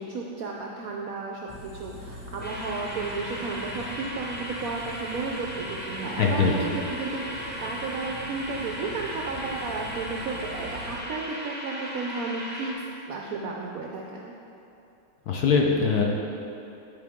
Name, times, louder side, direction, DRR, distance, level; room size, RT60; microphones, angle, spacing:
voice 1, 0.0-12.7 13.0-14.3, right 3 dB, 75° right, -1 dB, 0.8 m, -33 dB
sound 1, 1.5-11.0, equal, 5° right, 1.0 m, -43 dB
sound 2, 2.4-12.7, equal, 15° left, 0.4 m, -37 dB
voice 2, 6.2-6.5 15.3-16.0, left 5 dB, 65° left, -1 dB, 1.1 m, -22 dB
10.0 x 5.0 x 3.6 m, 2.8 s
omnidirectional pair, 2.1 m